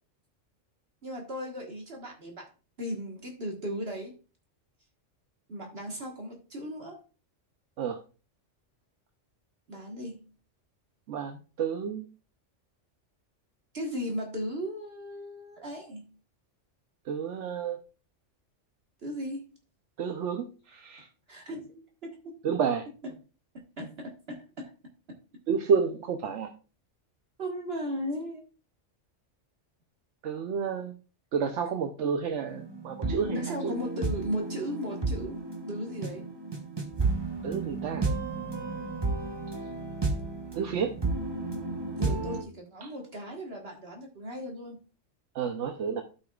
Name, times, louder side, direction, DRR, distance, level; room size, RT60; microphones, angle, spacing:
voice 1, 1.0-2.5 2.8-4.1 5.5-7.0 9.7-10.3 13.7-16.0 19.0-19.5 21.3-22.4 23.8-24.7 27.4-28.4 33.3-35.4 35.7-36.3 41.9-44.8, equal, 55° right, 0 dB, 1.6 m, -36 dB
voice 2, 11.1-12.1 17.1-17.8 20.0-21.1 22.4-22.8 25.5-26.5 30.2-30.9 31.3-33.7 37.4-38.1 40.5-40.9 42.8-42.9 45.3-46.0, right 6 dB, 75° right, 6 dB, 1.0 m, -30 dB
sound 1, 32.5-42.4, right 3 dB, 25° right, 0.9 m, -32 dB
12.5 x 5.6 x 2.3 m, 0.34 s
omnidirectional pair, 1.3 m